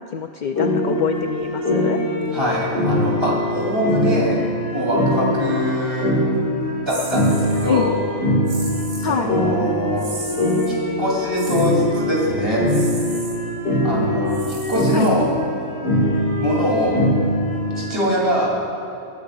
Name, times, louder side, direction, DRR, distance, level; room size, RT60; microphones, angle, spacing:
voice 1, 0.1-2.0 7.7-7.9 9.0-9.3 14.9-15.1, left 7 dB, 55° left, 6 dB, 0.5 m, -24 dB
sound 1, 0.6-18.0, left 1 dB, 85° left, 2.8 m, -22 dB
voice 2, 2.3-4.4 4.7-6.1 6.8-7.9 9.0-10.0 10.7-12.7 13.8-14.4 14.7-15.3 16.4-17.0 17.8-18.5, equal, 25° right, -5 dB, 3.6 m, -23 dB
sound 2, 6.9-7.7 8.5-9.1 10.0-10.7 11.3-11.8 12.7-13.4 14.3-15.4, right 2 dB, 90° right, 2.0 m, -36 dB
19.0 x 15.0 x 2.6 m, 2.8 s
omnidirectional pair, 1.1 m